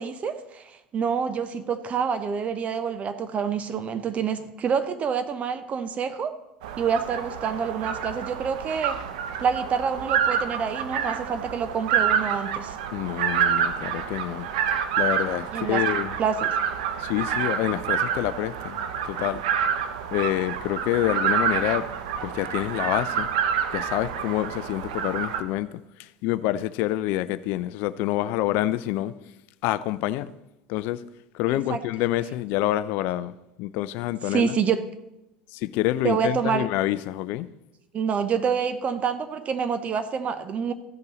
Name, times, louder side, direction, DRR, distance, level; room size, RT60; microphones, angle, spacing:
voice 1, 0.0-6.3 6.8-9.0 9.4-12.8 15.5-15.8 16.2-16.5 31.5-31.8 34.3-34.8 36.0-36.7 37.9-40.7, right 6 dB, 35° right, 0.8 m, -27 dB
sound 1, 6.6-25.4, right 8 dB, 70° right, 0.7 m, -28 dB
voice 2, 12.9-14.5 15.0-16.1 17.0-19.4 20.1-21.9 22.2-23.3 23.7-29.1 29.6-30.3 30.7-31.0 31.3-33.3 33.6-34.5 35.5-37.5, left 15 dB, 55° left, 0.4 m, -27 dB
14.5 x 5.4 x 4.1 m
hypercardioid pair, 80°, 4 cm